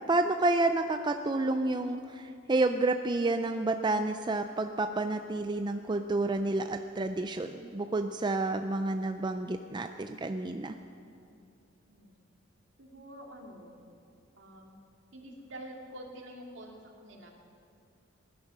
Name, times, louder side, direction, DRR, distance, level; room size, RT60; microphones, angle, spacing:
voice 1, 0.1-10.8, right 2 dB, 25° right, 7 dB, 0.4 m, -29 dB
voice 2, 11.9-12.2 12.8-13.7 14.4-14.8 15.1-17.3, right 1 dB, 70° right, 1 dB, 2.3 m, -47 dB
19.5 x 11.0 x 6.1 m, 2.5 s
head